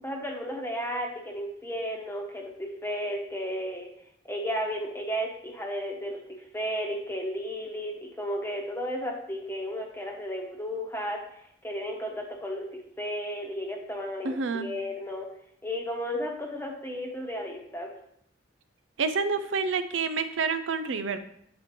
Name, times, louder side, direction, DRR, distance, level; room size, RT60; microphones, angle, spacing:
voice 1, 0.0-3.9 4.2-6.2 6.5-15.3 15.6-17.9, equal, 10° left, 1 dB, 1.0 m, -33 dB
voice 2, 14.2-14.7 19.0-21.2, right 5 dB, 80° right, 10 dB, 0.5 m, -28 dB
8.2 x 5.0 x 3.2 m, 0.70 s
head